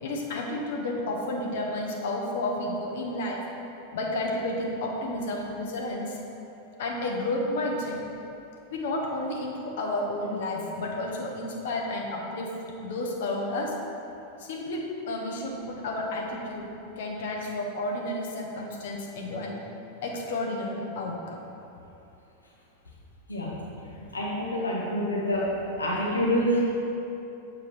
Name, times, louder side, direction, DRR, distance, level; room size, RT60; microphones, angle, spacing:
voice 1, 0.0-3.4 3.9-6.2 6.8-8.0 8.7-12.5 12.8-13.7 14.4-16.7 17.0-19.5 20.0-21.4, left 1 dB, 55° left, -1 dB, 0.9 m, -31 dB
voice 2, 24.1-25.4 25.8-26.6, equal, 80° left, -4 dB, 1.2 m, -26 dB
7.5 x 4.5 x 3.5 m, 2.9 s
figure-of-eight pair, 90°, 0 cm